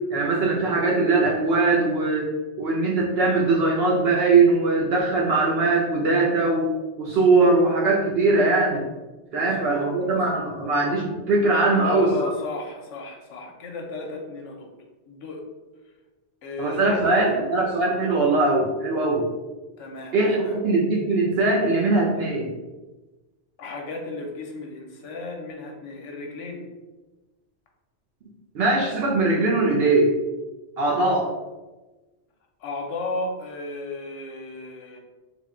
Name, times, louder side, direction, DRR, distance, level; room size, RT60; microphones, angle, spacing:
voice 1, 0.1-2.3 2.6-8.8 9.3-12.3 16.6-19.3 20.1-22.5 28.5-30.1 30.8-31.3, right 3 dB, 65° right, -2 dB, 0.7 m, -21 dB
voice 2, 9.3-10.5 11.7-14.7 15.1-15.4 16.4-17.5 19.8-20.6 23.6-26.6 32.6-35.0, left 3 dB, 85° left, 1 dB, 1.0 m, -34 dB
3.5 x 2.1 x 3.6 m, 1.2 s
omnidirectional pair, 1.2 m